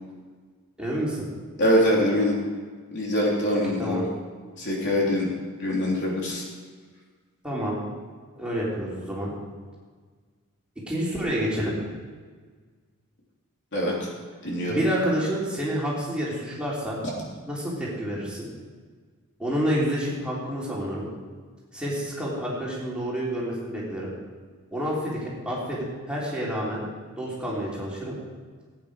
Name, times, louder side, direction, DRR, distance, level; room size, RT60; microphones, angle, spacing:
voice 1, 0.8-1.3 3.8-4.1 7.4-7.8 8.4-9.3 10.9-11.7 14.7-17.0 17.5-18.5 19.4-21.1 21.7-24.1 24.7-26.8 27.2-28.2, equal, 5° right, -6 dB, 3.5 m, -28 dB
voice 2, 1.6-2.4 2.9-4.1 4.6-5.3 5.6-6.4 13.7-13.9 14.4-14.8, equal, 55° left, -3 dB, 3.4 m, -23 dB
17.0 x 9.2 x 5.1 m, 1.5 s
head